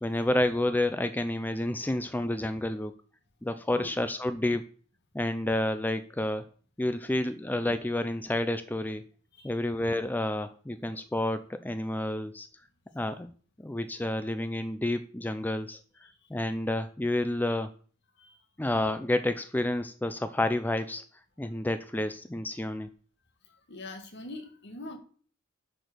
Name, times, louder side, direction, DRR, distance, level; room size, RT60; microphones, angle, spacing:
voice 1, 0.0-2.9 3.4-4.6 5.1-6.5 6.8-9.0 9.4-12.5 12.9-13.3 13.6-15.8 16.3-17.7 18.6-21.0 21.4-22.9, left 1 dB, 10° left, 10 dB, 0.5 m, -29 dB
voice 2, 23.5-25.0, left 2 dB, 60° left, 6 dB, 1.7 m, -44 dB
10.0 x 4.6 x 6.7 m, 0.44 s
head